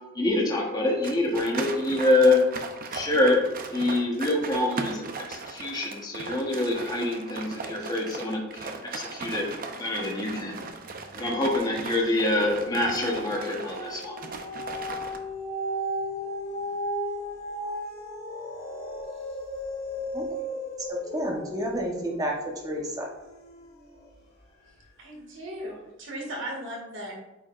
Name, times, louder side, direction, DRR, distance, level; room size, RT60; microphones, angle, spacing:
voice 1, 0.1-2.4 2.9-3.4 3.7-5.0 5.3-9.5 9.8-10.6 11.2-14.2, left 2 dB, 20° left, -2 dB, 1.1 m, -25 dB
sound 1, 1.0-15.2, right 4 dB, 45° right, 0.6 m, -38 dB
sound 2, 10.8-11.3 11.7-24.2 24.7-24.8, equal, 50° left, 2.1 m, -36 dB
voice 2, 20.9-22.3 22.6-23.1, equal, 20° right, -1 dB, 1.1 m, -30 dB
voice 3, 25.0-27.1, right 1 dB, 60° right, -2 dB, 2.1 m, -37 dB
8.6 x 4.9 x 2.5 m, 0.96 s
head